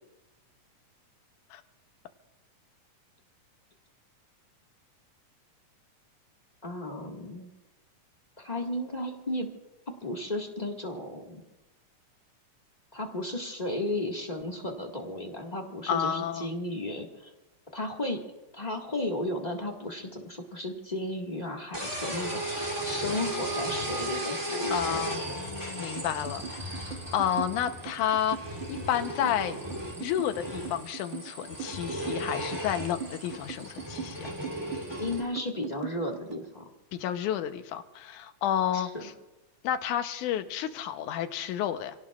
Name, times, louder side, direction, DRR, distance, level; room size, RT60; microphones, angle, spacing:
voice 1, 6.6-7.5 8.4-9.5 10.0-11.4 12.9-17.3 17.7-18.2 18.5-25.0 35.0-36.6 38.7-39.1, left 1 dB, 20° left, 0 dB, 1.0 m, -34 dB
voice 2, 15.9-16.5 24.7-28.4 28.7-29.6 30.0-34.3 36.9-39.1 39.6-41.9, left 10 dB, 80° left, 8 dB, 2.4 m, -31 dB
sound 1, 21.7-35.2, right 1 dB, 10° right, 2.6 m, -36 dB
sound 2, 26.0-36.5, right 7 dB, 80° right, 1.0 m, -40 dB
28.0 x 17.5 x 2.4 m, 1.0 s
omnidirectional pair, 3.6 m